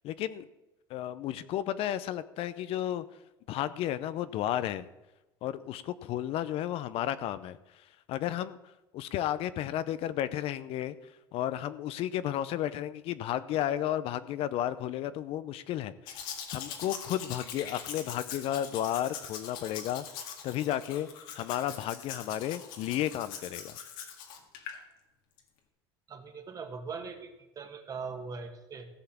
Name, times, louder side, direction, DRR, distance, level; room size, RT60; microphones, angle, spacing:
voice 1, 0.0-0.5 0.9-3.0 3.5-4.8 5.4-8.6 8.9-11.0 11.3-21.1 21.3-23.8, left 12 dB, 55° left, 14 dB, 0.6 m, -33 dB
Domestic sounds home sounds, 16.1-24.8 25.4-25.5, left 8 dB, 75° left, 1.9 m, -42 dB
voice 2, 26.1-28.9, right 5 dB, 30° right, 6 dB, 1.8 m, -41 dB
15.5 x 5.7 x 7.3 m, 1.0 s
supercardioid pair, 105°, 12 cm